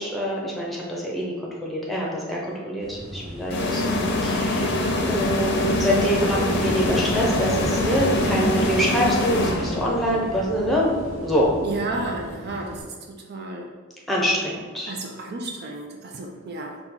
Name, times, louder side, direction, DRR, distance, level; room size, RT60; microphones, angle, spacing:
voice 1, 0.0-1.3 1.6-3.9 4.2-4.7 5.0-10.9 11.2-11.5 14.1-14.9, equal, ahead, -4 dB, 0.7 m, -25 dB
Wind / Waves surf, 2.8-12.8, equal, 35° right, 1.0 m, -34 dB
sound 1, 3.5-10.1, left 2 dB, 60° left, 0.6 m, -24 dB
voice 2, 4.6-5.8 11.6-13.7 14.9-16.8, right 2 dB, 55° right, 1 dB, 0.4 m, -32 dB
4.2 x 2.3 x 3.8 m, 1.4 s
head